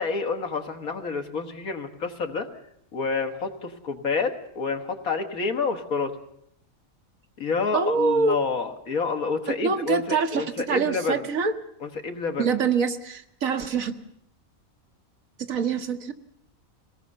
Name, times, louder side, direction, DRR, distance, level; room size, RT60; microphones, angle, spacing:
voice 1, 0.0-2.5 2.9-6.1 7.4-11.3 11.8-12.5, left 4 dB, 85° left, 5 dB, 2.1 m, -28 dB
voice 2, 7.7-8.4 9.6-11.5 12.4-13.9 15.4-16.1, right 5 dB, 75° right, 7 dB, 1.6 m, -25 dB
23.0 x 18.5 x 6.8 m, 0.74 s
omnidirectional pair, 1.5 m